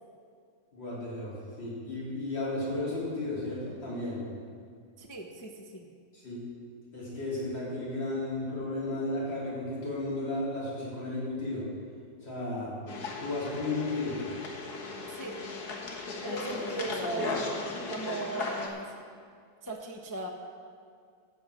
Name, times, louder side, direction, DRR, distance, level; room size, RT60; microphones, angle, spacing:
voice 1, 0.7-4.2 6.1-6.4 6.9-11.6 12.2-12.7 13.2-14.2, left 2 dB, 75° left, -8 dB, 4.3 m, -34 dB
voice 2, 5.0-5.8 15.1-15.4 16.2-17.5 17.9-18.9 19.6-20.3, right 2 dB, 20° left, -1 dB, 0.5 m, -37 dB
sound 1, 12.9-18.7, left 3 dB, 60° left, 1.8 m, -36 dB
15.5 x 6.6 x 6.2 m, 2.2 s
omnidirectional pair, 2.0 m